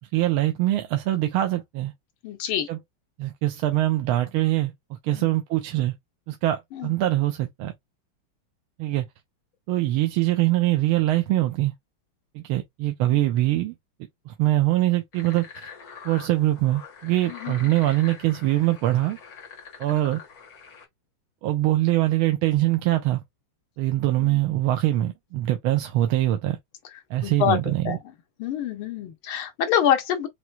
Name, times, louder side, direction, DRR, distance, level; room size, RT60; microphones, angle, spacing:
voice 1, 0.1-1.9 2.7-2.8 3.2-4.7 5.0-5.9 6.3-7.7 8.8-9.1 9.7-11.7 12.3-13.7 14.3-15.7 16.0-19.2 19.8-20.2 21.4-23.2 23.8-26.6 27.1-28.0, right 15 dB, 90° right, 1.5 m, -23 dB
voice 2, 2.2-2.7 5.1-5.3 6.7-7.0 13.1-13.2 17.3-17.7 24.2-24.4 27.2-27.6 27.9-28.0 28.4-30.3, left 9 dB, 80° left, 1.7 m, -26 dB
sound 1, 15.1-20.9, left 5 dB, 50° left, 1.9 m, -44 dB
6.0 x 2.8 x 2.3 m
omnidirectional pair, 2.3 m